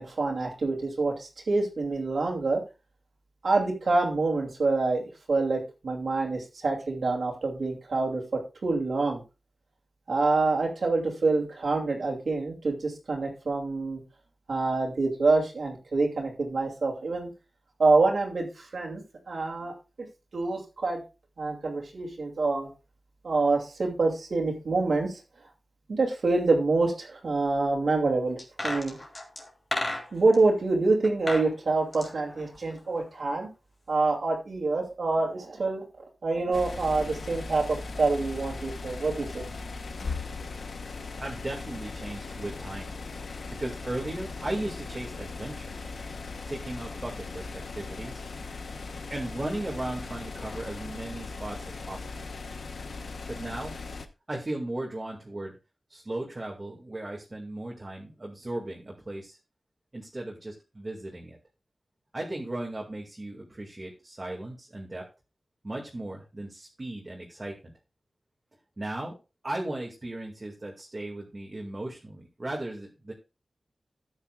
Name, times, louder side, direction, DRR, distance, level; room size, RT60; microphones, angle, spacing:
voice 1, 0.0-2.6 3.4-9.2 10.1-14.0 14.5-17.3 17.8-20.1 20.3-21.0 21.4-22.7 23.2-25.2 25.9-29.0 30.1-33.5 33.9-35.8 36.2-39.4, right 3 dB, 70° right, -1 dB, 2.6 m, -26 dB
sound 1, 28.4-30.4 31.0-31.5 31.8-33.1 33.4-33.5, left 1 dB, 30° left, 3.2 m, -34 dB
sound 2, 36.5-54.1, left 4 dB, 75° left, 1.0 m, -38 dB
voice 2, 41.2-42.9 43.5-45.7 46.5-48.2 49.1-52.1 53.3-53.7 54.3-55.6 55.9-59.4 59.9-61.4 62.1-65.1 65.6-67.7 68.8-69.2 69.4-73.1, right 1 dB, 30° right, -1 dB, 2.2 m, -36 dB
13.5 x 8.9 x 2.4 m, 0.29 s
wide cardioid pair, 110°, 0 cm